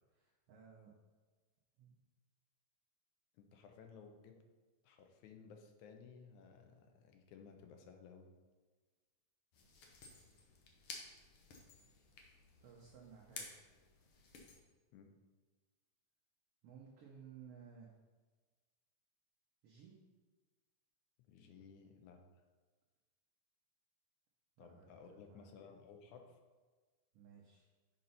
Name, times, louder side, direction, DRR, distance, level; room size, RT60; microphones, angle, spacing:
voice 1, 0.1-0.9 1.8-2.0 12.6-13.7 16.6-17.9 19.6-20.0 24.6-25.5 27.1-27.7, right 6 dB, 70° right, -2 dB, 1.5 m, -58 dB
voice 2, 3.3-4.4 4.8-8.3 14.9-15.1 21.3-22.4 24.6-26.4, left 5 dB, 80° left, 4 dB, 2.1 m, -58 dB
sound 1, 9.5-14.6, left 4 dB, 65° left, 1.5 m, -54 dB
6.6 x 4.3 x 5.5 m, 1.4 s
omnidirectional pair, 3.5 m